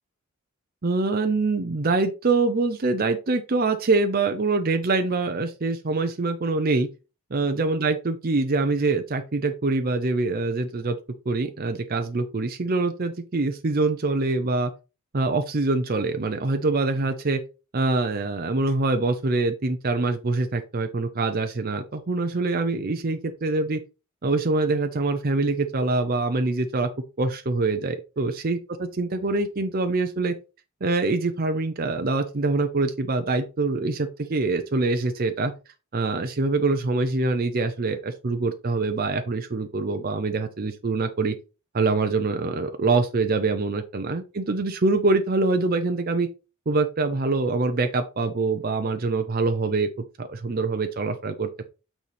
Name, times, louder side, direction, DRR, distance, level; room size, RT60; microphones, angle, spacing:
voice 1, 0.8-6.9 7.3-11.0 11.3-14.7 15.1-17.4 17.7-23.8 24.2-26.9 27.2-30.3 30.8-35.5 35.9-41.4 41.7-46.3 46.7-49.9 50.2-51.6, right 3 dB, 40° right, 7 dB, 0.6 m, -24 dB
8.9 x 4.1 x 3.4 m, 0.31 s
head